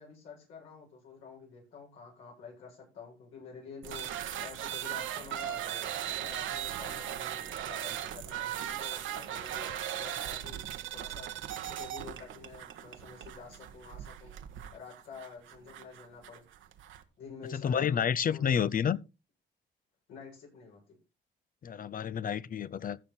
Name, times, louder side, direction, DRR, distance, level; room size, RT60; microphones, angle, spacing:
voice 1, 0.0-10.7 10.9-14.4 14.7-16.4 17.2-18.6 20.1-21.0, left 5 dB, 85° left, 7.5 m, -49 dB
sound 1, 3.8-17.0, right 11 dB, 80° right, 1.4 m, -38 dB
voice 2, 17.5-19.0 21.6-23.0, left 8 dB, 45° left, 0.6 m, -29 dB
15.0 x 6.5 x 4.4 m
cardioid pair, 90°, 20 cm